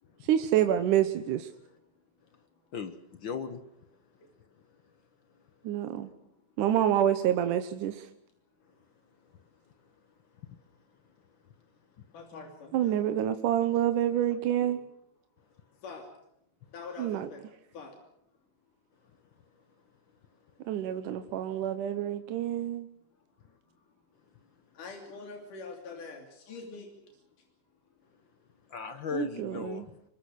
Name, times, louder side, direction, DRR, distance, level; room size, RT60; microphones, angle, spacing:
voice 1, 0.2-1.5 5.6-6.1 6.6-8.1 12.7-14.8 17.0-17.3 20.7-22.9 29.1-29.9, right 11 dB, 85° right, 9 dB, 2.5 m, -27 dB
voice 2, 2.7-3.6 12.0-12.1 28.7-30.0, left 7 dB, 55° left, 10 dB, 1.3 m, -37 dB
voice 3, 12.1-13.0 14.6-14.7 15.8-16.1 16.7-17.4 17.7-17.9 23.7-23.9 24.7-26.9, left 4 dB, 85° left, 3 dB, 4.5 m, -45 dB
24.5 x 23.0 x 6.5 m, 0.77 s
omnidirectional pair, 3.6 m